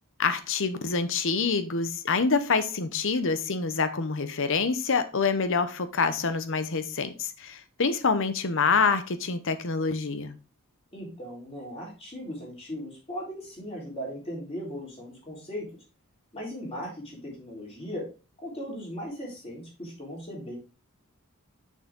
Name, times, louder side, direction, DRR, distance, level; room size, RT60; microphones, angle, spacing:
voice 1, 0.2-10.3, left 4 dB, 60° left, 11 dB, 0.9 m, -26 dB
voice 2, 10.9-15.7 16.3-18.0 18.4-20.6, equal, 30° left, -3 dB, 3.8 m, -38 dB
6.5 x 6.4 x 3.6 m, 0.33 s
head